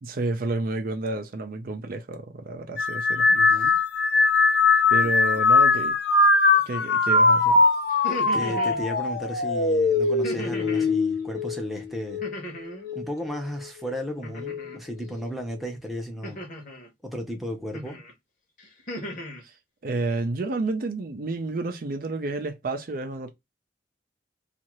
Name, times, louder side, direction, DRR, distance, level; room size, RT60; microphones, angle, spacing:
voice 1, 0.0-3.3 4.9-6.0 6.7-7.6 19.4-19.5 19.8-23.3, right 2 dB, 55° right, 0.5 m, -30 dB
sound 1, 2.8-12.4 12.8-13.4 14.4-14.7, left 3 dB, 65° left, 0.4 m, -21 dB
voice 2, 3.3-3.7 5.0-5.4 8.3-12.2 12.9-16.4 17.0-18.0, equal, ahead, 0.7 m, -34 dB
sound 2, 7.9-8.8 10.2-10.9 12.2-12.9 14.2-14.8 16.2-16.9 17.7-18.1 18.6-19.4, equal, 50° left, 0.9 m, -36 dB
2.7 x 2.5 x 2.9 m
head